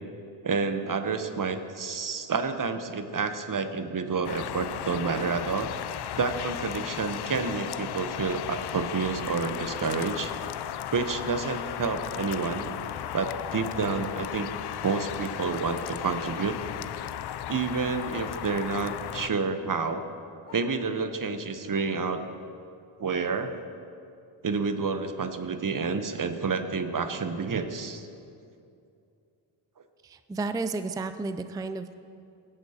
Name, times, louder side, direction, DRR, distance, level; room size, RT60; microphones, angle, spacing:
voice 1, 0.4-5.7 6.2-10.3 10.9-12.7 13.1-14.5 14.8-16.6 17.5-20.0 20.5-22.2 23.0-23.5 24.4-28.1, right 4 dB, 40° right, 8 dB, 0.9 m, -29 dB
sound 1, 4.2-19.3, left 11 dB, 55° left, 0.5 m, -35 dB
Bark, 18.2-18.5 19.3-19.6 20.4-20.8 21.7-22.1 23.1-23.2, left 3 dB, 85° left, 1.7 m, -51 dB
voice 2, 30.0-31.9, right 3 dB, 10° right, 10 dB, 0.4 m, -32 dB
17.0 x 8.8 x 2.9 m, 2.5 s
supercardioid pair, 45°, 49 cm